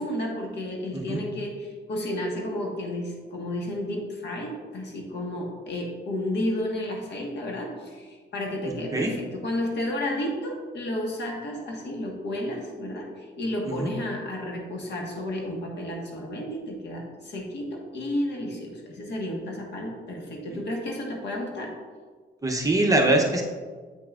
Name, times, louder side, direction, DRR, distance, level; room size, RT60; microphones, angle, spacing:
voice 1, 0.0-21.7, left 1 dB, 60° left, 0 dB, 1.5 m, -32 dB
voice 2, 8.7-9.1 13.7-13.9 22.4-23.4, right 2 dB, 15° right, 1 dB, 0.7 m, -23 dB
8.1 x 5.7 x 2.5 m, 1.5 s
cardioid pair, 90°, 20 cm